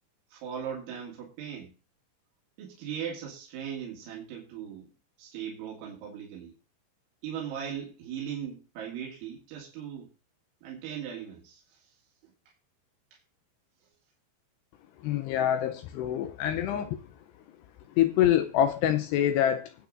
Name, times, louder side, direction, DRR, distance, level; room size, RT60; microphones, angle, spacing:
voice 1, 0.3-1.7 2.6-4.9 5.2-6.6 7.2-10.1 10.6-11.9 13.1-13.2, right 8 dB, 85° right, -3 dB, 4.4 m, -38 dB
voice 2, 15.0-17.0 18.0-19.7, left 11 dB, 80° left, 9 dB, 2.5 m, -25 dB
24.0 x 8.4 x 2.6 m, 0.33 s
omnidirectional pair, 5.3 m